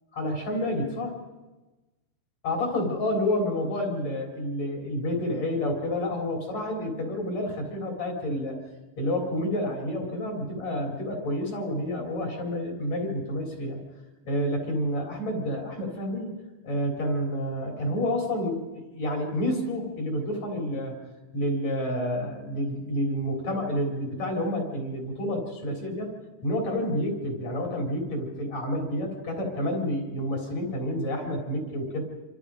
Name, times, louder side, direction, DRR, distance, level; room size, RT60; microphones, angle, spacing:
voice 1, 0.2-1.2 2.4-8.6 9.0-13.8 14.2-16.4 16.6-21.0 21.3-26.1 26.4-32.0, left 1 dB, 45° left, 0 dB, 5.0 m, -29 dB
28.0 x 25.5 x 5.1 m, 1.2 s
omnidirectional pair, 4.5 m